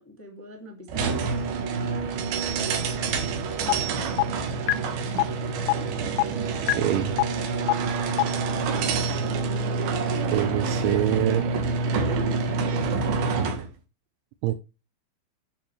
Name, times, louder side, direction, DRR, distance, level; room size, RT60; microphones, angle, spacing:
voice 1, 0.0-2.9 3.9-4.3 4.6-5.1, left 1 dB, 10° left, 1 dB, 0.7 m, -46 dB
sound 1, 0.9-13.7, right 4 dB, 65° right, 2.9 m, -27 dB
sound 2, 3.7-3.8 4.2-4.3 4.7-4.8 5.2-5.3 5.7-5.8 6.2-6.3 6.7-6.8 7.2-7.3 7.7-7.8 8.2-8.3, left 21 dB, 80° left, 2.5 m, -19 dB
voice 2, 6.7-7.1 10.3-11.5 14.4-14.5, right 13 dB, 90° right, 7 dB, 3.2 m, -25 dB
9.4 x 7.3 x 3.3 m, 0.28 s
omnidirectional pair, 5.2 m